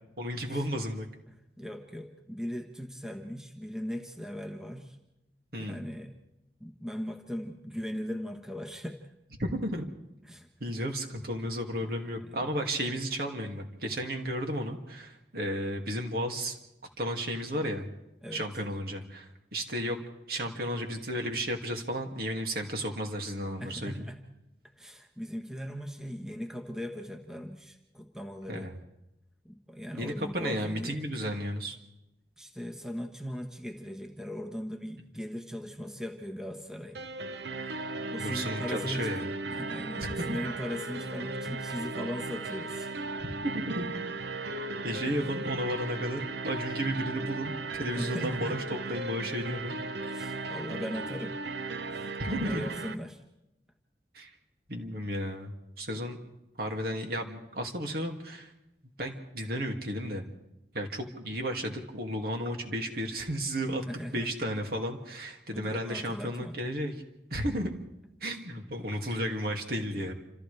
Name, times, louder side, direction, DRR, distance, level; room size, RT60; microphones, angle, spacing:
voice 1, 0.2-1.1 5.5-5.8 9.4-9.9 10.6-16.6 17.0-17.9 18.3-20.0 20.3-24.1 28.5-28.8 29.9-31.8 38.2-39.2 40.2-40.4 43.2-43.9 44.8-48.6 48.9-49.7 52.2-52.7 54.1-54.3 54.7-55.5 55.8-56.2 56.6-58.5 59.0-60.2 60.7-63.8 64.1-66.9 67.3-67.7 68.2-70.1, equal, 55° right, 2 dB, 2.4 m, -33 dB
voice 2, 1.3-5.0 5.6-6.1 6.6-9.1 10.2-10.5 11.9-12.5 18.2-18.4 23.6-24.2 24.7-28.7 29.4-31.0 32.4-37.0 38.1-42.9 45.0-45.2 48.0-48.6 50.0-51.4 51.9-53.2 63.9-64.3 65.5-66.6 69.1-69.2 70.0-70.1, equal, 5° right, 3 dB, 1.3 m, -39 dB
sound 1, 36.9-52.9, right 3 dB, 70° right, 0.8 m, -36 dB
28.0 x 27.0 x 3.4 m, 0.90 s
head